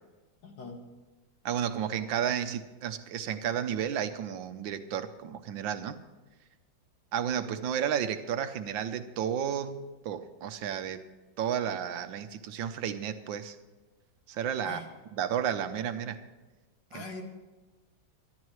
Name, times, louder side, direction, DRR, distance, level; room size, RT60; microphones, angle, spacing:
voice 1, 0.4-0.8 14.6-14.9 16.9-17.2, left 3 dB, 70° left, 2 dB, 2.5 m, -41 dB
voice 2, 1.4-5.9 7.1-11.0 11.4-13.6 14.3-14.8 15.1-16.2 16.9-17.0, right 9 dB, 90° right, 10 dB, 1.5 m, -32 dB
24.5 x 11.5 x 3.2 m, 1.2 s
omnidirectional pair, 2.0 m